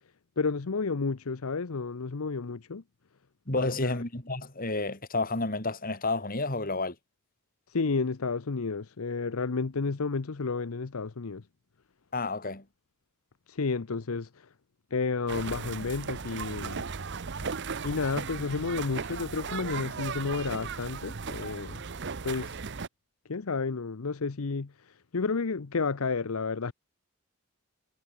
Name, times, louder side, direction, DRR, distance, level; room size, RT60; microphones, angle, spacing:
voice 1, 0.4-2.8 3.6-4.0 7.7-11.4 13.5-14.5 14.9-16.8 17.8-21.8 22.2-22.6 23.3-26.7, left 4 dB, 70° left, 0.7 m, -31 dB
voice 2, 3.5-6.9 12.1-12.6, left 2 dB, 40° left, 3.3 m, -30 dB
sound 1, 15.3-22.9, right 5 dB, 50° right, 0.9 m, -36 dB
head